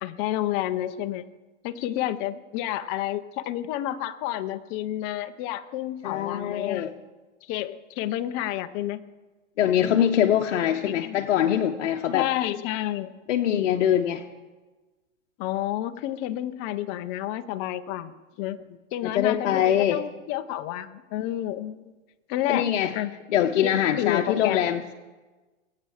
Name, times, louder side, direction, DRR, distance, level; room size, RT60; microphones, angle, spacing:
voice 1, 0.0-1.3 1.6-6.9 7.4-9.0 9.6-10.1 10.8-11.2 12.1-13.2 15.4-18.6 18.9-21.9 22.3-22.7 22.9-23.1 23.4-24.7, left 13 dB, 30° left, 10 dB, 0.7 m, -30 dB
voice 2, 6.0-6.9 9.6-12.3 13.3-14.2 19.0-20.0 22.5-22.9 23.3-24.9, left 10 dB, 65° left, 4 dB, 1.0 m, -23 dB
21.5 x 8.5 x 4.9 m, 1.2 s
hypercardioid pair, 140°, 37 cm